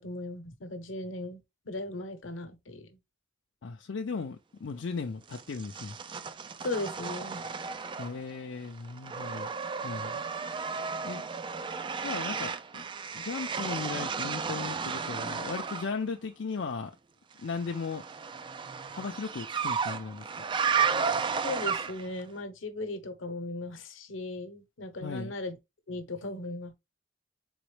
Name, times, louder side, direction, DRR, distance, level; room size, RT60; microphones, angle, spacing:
voice 1, 0.0-3.0 6.6-7.5 21.3-25.6 25.9-26.7, left 2 dB, 85° left, 0.9 m, -37 dB
voice 2, 3.6-6.0 8.0-9.5 9.8-10.2 11.0-11.2 12.0-12.9 13.1-16.9 17.4-18.0 18.9-20.3 25.0-25.3, left 4 dB, 65° left, 0.5 m, -36 dB
sound 1, 5.3-8.4 8.6-15.9 17.5-22.2, right 6 dB, 25° right, 0.3 m, -33 dB
4.0 x 3.9 x 3.2 m
head